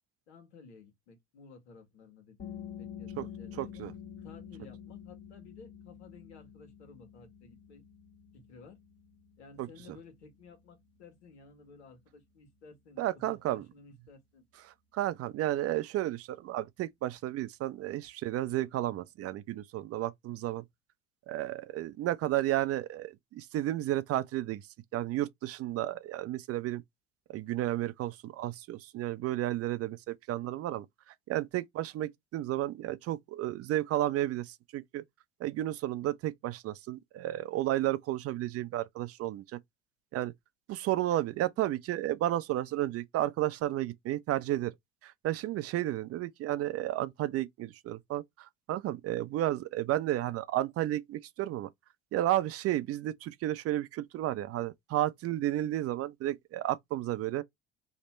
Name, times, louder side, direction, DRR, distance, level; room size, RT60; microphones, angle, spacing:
voice 1, 0.3-2.5 2.8-3.8 4.2-7.8 8.3-8.8 9.4-14.4, left 4 dB, 80° left, 1.7 m, -55 dB
sound 1, 2.4-13.8, left 8 dB, 35° left, 1.3 m, -49 dB
voice 2, 3.6-3.9 9.6-9.7 13.0-13.6 14.9-20.6 21.3-24.6 24.9-26.8 27.3-30.9 31.3-35.0 35.4-39.6 40.1-40.3 40.7-44.7 45.0-48.2 48.7-51.7 52.1-57.4, right 14 dB, 45° right, 0.6 m, -32 dB
3.3 x 2.8 x 4.3 m
hypercardioid pair, 70°, 33 cm